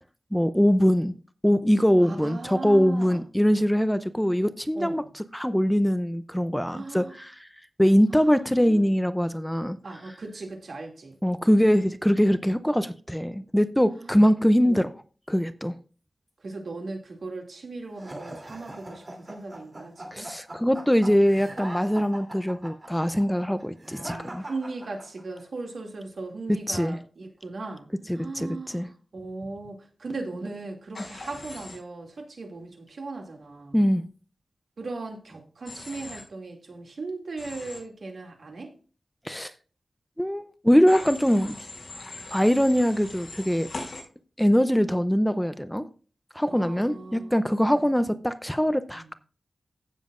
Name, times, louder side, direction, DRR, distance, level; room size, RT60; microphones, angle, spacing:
voice 1, 0.3-1.1 1.4-7.5 7.8-9.8 11.2-14.9 15.3-15.7 20.1-24.4 26.7-27.0 28.1-28.9 33.7-34.0 39.3-39.5 40.2-41.7 42.3-43.7 44.4-45.9 46.3-49.1, equal, 5° left, 0.5 m, -22 dB
voice 2, 2.0-3.2 4.7-5.1 6.7-7.2 8.1-8.8 9.8-11.2 14.0-14.3 14.6-14.9 16.4-20.3 23.8-33.8 34.8-38.7 46.5-47.4 48.9-49.0, right 3 dB, 70° right, 2.4 m, -38 dB
sound 1, 18.0-25.4, right 1 dB, 30° right, 3.0 m, -41 dB
Human voice / Train, 30.9-31.8 35.7-36.2 37.4-37.8 40.9-44.0, left 2 dB, 60° left, 5.8 m, -40 dB
16.0 x 7.3 x 2.5 m
wide cardioid pair, 115°, 0 cm